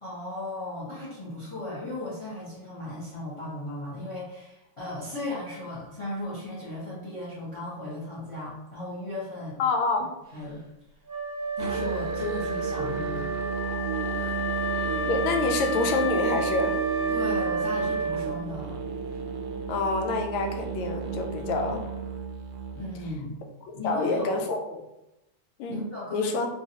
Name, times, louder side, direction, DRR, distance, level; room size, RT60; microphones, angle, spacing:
voice 1, 0.0-9.6 10.3-10.6 11.6-13.3 14.2-14.4 17.1-18.8 22.7-23.4 23.7-24.3 25.7-26.3, left 1 dB, 30° left, -7 dB, 0.5 m, -36 dB
voice 2, 9.6-10.1 14.7-16.8 19.7-21.9 23.7-24.8 25.6-25.8 26.1-26.5, left 3 dB, 85° left, 4 dB, 1.4 m, -27 dB
Wind instrument woodwind instrument, 11.1-18.6, right 2 dB, 15° right, 0.7 m, -31 dB
Musical instrument, 11.6-23.2, right 5 dB, 70° right, 1.1 m, -33 dB
3.8 x 2.9 x 2.8 m, 0.91 s
omnidirectional pair, 2.2 m